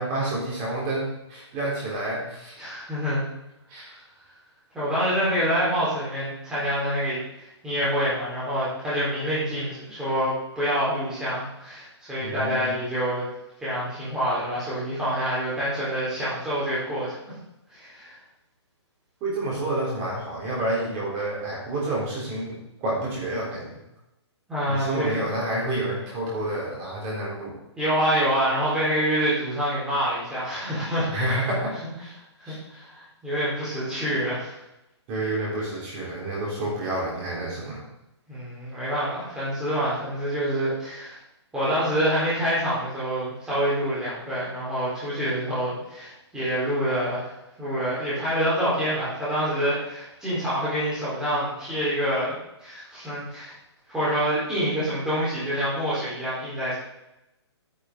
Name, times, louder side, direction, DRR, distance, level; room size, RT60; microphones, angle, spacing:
voice 1, 0.0-2.5 3.7-3.9 12.2-12.7 19.2-23.7 24.7-27.5 31.1-31.8 32.5-32.6 35.1-37.8, right 1 dB, 20° right, -4 dB, 3.8 m, -29 dB
voice 2, 2.6-3.2 4.7-7.2 7.6-13.2 13.6-17.2 17.7-18.1 24.5-25.3 27.8-31.1 32.4-34.6 38.3-41.2 41.5-47.3 47.6-53.5 53.9-56.7, equal, 5° right, -11 dB, 4.2 m, -26 dB
10.0 x 9.9 x 3.9 m, 0.88 s
hypercardioid pair, 170°, 15 cm